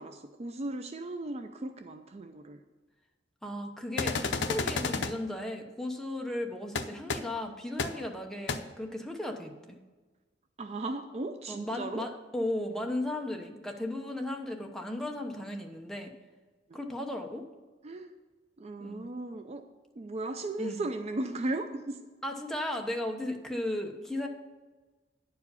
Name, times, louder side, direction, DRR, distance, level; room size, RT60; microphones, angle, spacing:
voice 1, 0.0-2.6 10.6-12.1 16.7-16.8 17.8-18.1 18.6-19.6 20.0-22.0, right 2 dB, 35° right, 7 dB, 0.4 m, -36 dB
voice 2, 3.4-9.8 11.5-16.1 16.7-17.4 18.8-19.1 20.6-20.8 22.2-24.3, left 1 dB, 5° left, 2 dB, 0.9 m, -35 dB
sound 1, 4.0-5.1 6.7-6.8 7.1-7.2 7.8-7.9 8.5-8.6, left 4 dB, 75° left, 0.6 m, -30 dB
9.9 x 4.8 x 6.9 m, 1.3 s
head